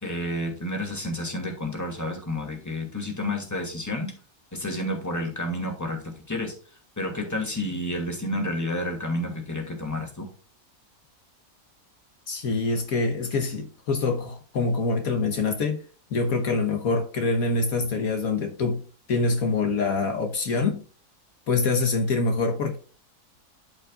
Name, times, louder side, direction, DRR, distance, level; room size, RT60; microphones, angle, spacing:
voice 1, 0.0-4.1 4.5-6.5 7.0-10.3, left 1 dB, 10° left, 2.3 m, -30 dB
voice 2, 12.3-15.8 16.1-18.8 19.1-20.8 21.5-22.8, left 3 dB, 70° left, 1.5 m, -25 dB
12.5 x 5.3 x 2.4 m
omnidirectional pair, 1.6 m